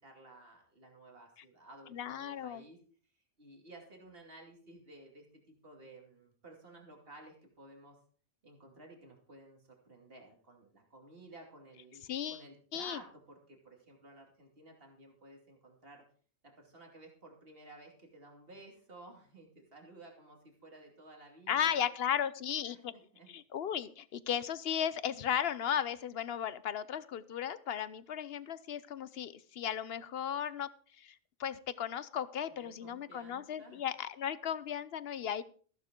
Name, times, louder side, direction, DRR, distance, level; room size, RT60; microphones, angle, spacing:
voice 1, 0.0-2.8 3.4-8.0 8.4-12.0 12.3-16.0 16.4-21.9 22.6-23.3 32.5-33.9, right 2 dB, 70° right, 1 dB, 2.9 m, -55 dB
voice 2, 1.9-2.6 12.1-12.4 12.7-13.0 21.5-22.9 23.3-30.7 31.0-35.4, left 9 dB, 75° left, 16 dB, 1.0 m, -35 dB
14.5 x 11.5 x 3.8 m, 0.43 s
omnidirectional pair, 1.0 m